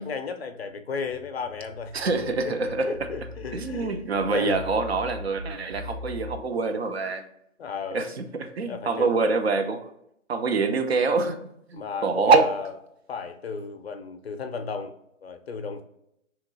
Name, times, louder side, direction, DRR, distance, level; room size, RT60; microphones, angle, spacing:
voice 1, 0.0-1.9 2.2-4.6 7.6-8.1 8.6-9.1 11.7-12.7 13.1-14.9 15.2-15.8, left 5 dB, 50° left, 7 dB, 0.5 m, -35 dB
sound 1, 1.0-6.4, left 2 dB, 70° right, 1.0 m, -40 dB
voice 2, 1.9-2.9 3.5-7.3 7.9-9.9 10.3-12.5, right 4 dB, 55° right, 7 dB, 0.4 m, -25 dB
2.9 x 2.3 x 3.9 m, 0.77 s
figure-of-eight pair, 155°, 39 cm